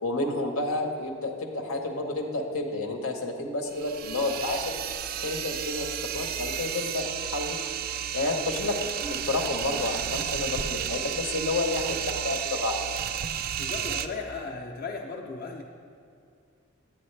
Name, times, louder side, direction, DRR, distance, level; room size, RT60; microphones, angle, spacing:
voice 1, 0.0-4.6 5.2-5.9 6.1-7.7 8.1-13.0, left 2 dB, 85° left, 3 dB, 1.0 m, -30 dB
sound 1, 3.7-14.1, right 9 dB, 45° right, 0.3 m, -32 dB
voice 2, 13.6-15.6, left 4 dB, 45° left, -1 dB, 0.7 m, -36 dB
10.0 x 8.8 x 3.2 m, 2.4 s
head